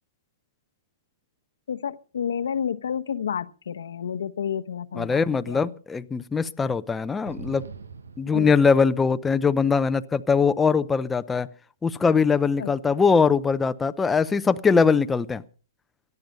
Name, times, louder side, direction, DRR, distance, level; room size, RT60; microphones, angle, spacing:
voice 1, 1.7-5.7 8.3-8.6 12.6-12.7, left 8 dB, 75° left, 1.0 m, -30 dB
voice 2, 5.0-7.6 8.2-11.5 11.8-15.4, left 5 dB, 10° left, 0.6 m, -21 dB
sound 1, 7.3-9.2, right 4 dB, 85° right, 1.3 m, -42 dB
18.0 x 12.0 x 5.3 m
hypercardioid pair, 130°, 0 cm